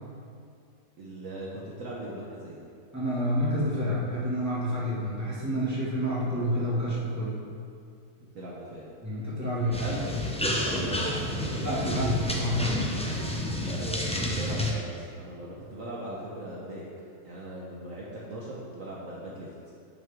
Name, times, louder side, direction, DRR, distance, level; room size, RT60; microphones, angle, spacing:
voice 1, 1.0-2.6 8.3-8.9 9.6-11.6 13.6-16.8 17.2-19.5, right 1 dB, 60° right, -5 dB, 1.4 m, -39 dB
voice 2, 2.9-7.4 9.0-9.8 11.6-12.8, equal, 10° right, -9 dB, 2.2 m, -29 dB
sound 1, 9.7-14.7, left 1 dB, 5° left, 0.5 m, -30 dB
11.0 x 6.3 x 3.6 m, 2.4 s
omnidirectional pair, 1.7 m